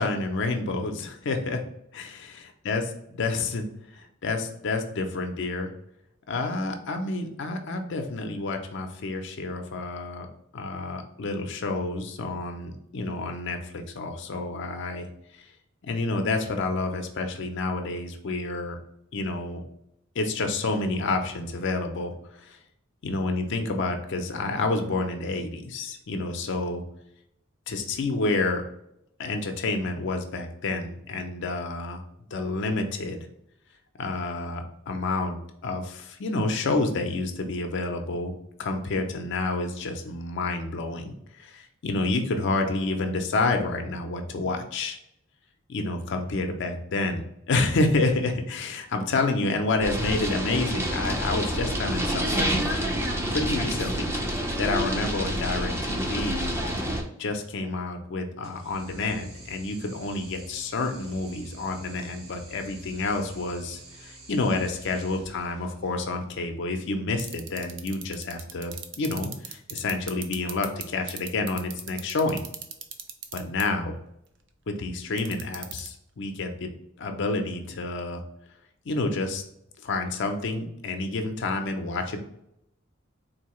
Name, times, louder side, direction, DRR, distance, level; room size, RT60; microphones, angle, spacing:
voice 1, 0.0-1.6 1.9-2.8 3.2-3.6 3.9-5.7 6.3-10.3 10.5-15.1 15.4-15.5 15.8-18.8 19.1-19.6 20.2-22.6 23.0-26.8 27.7-28.6 29.2-32.0 32.3-33.3 34.0-38.3 38.6-45.0 45.7-52.6 53.3-54.1 54.6-56.5 57.2-72.4 73.3-73.9 74.7-76.7 77.0-78.2 78.9-79.4 79.8-82.2, left 3 dB, 60° left, 5 dB, 0.5 m, -29 dB
sound 1, 49.8-57.0, equal, 10° right, 0.5 m, -28 dB
sound 2, 58.4-66.0, right 2 dB, 85° right, 0.9 m, -48 dB
sound 3, 67.2-70.8 71.1-73.6 75.2-75.9, right 9 dB, 60° right, 0.5 m, -35 dB
3.9 x 2.7 x 3.0 m, 0.78 s
head